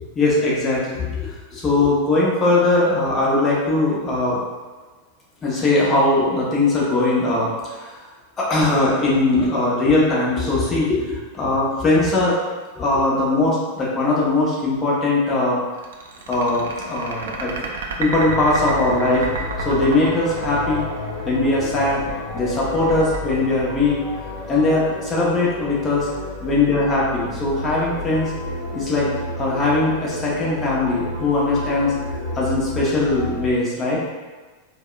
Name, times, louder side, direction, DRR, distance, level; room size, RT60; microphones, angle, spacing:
voice 1, 0.2-4.4 5.4-7.9 8.4-12.4 12.7-15.6 16.3-17.5 18.0-19.3 19.6-20.9 21.2-22.0 22.3-24.0 24.5-26.1 26.4-28.3 28.7-29.1 29.4-31.9 32.3-34.0, left 2 dB, 20° left, -6 dB, 0.9 m, -20 dB
sound 1, 15.8-24.4, right 5 dB, 65° right, 0.4 m, -31 dB
sound 2, 18.2-33.5, left 2 dB, 55° left, 1.3 m, -31 dB
4.6 x 2.2 x 2.4 m, 1.3 s
figure-of-eight pair, 90°, 0 cm